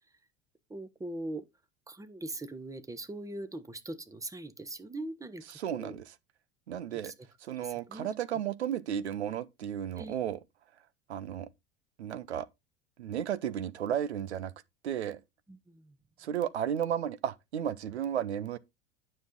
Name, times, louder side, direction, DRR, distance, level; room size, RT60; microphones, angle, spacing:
voice 1, 0.7-1.4 1.9-5.4 5.7-5.9 7.0-7.1 7.9-8.1 10.0-10.1 15.7-15.9, right 2 dB, 10° right, 1.0 m, -40 dB
voice 2, 5.5-6.1 6.7-7.1 7.4-10.4 11.1-11.5 12.0-12.5 13.0-14.5 14.8-15.2 16.2-18.6, right 9 dB, 80° right, 0.7 m, -33 dB
9.4 x 6.4 x 3.7 m
figure-of-eight pair, 75°, 33 cm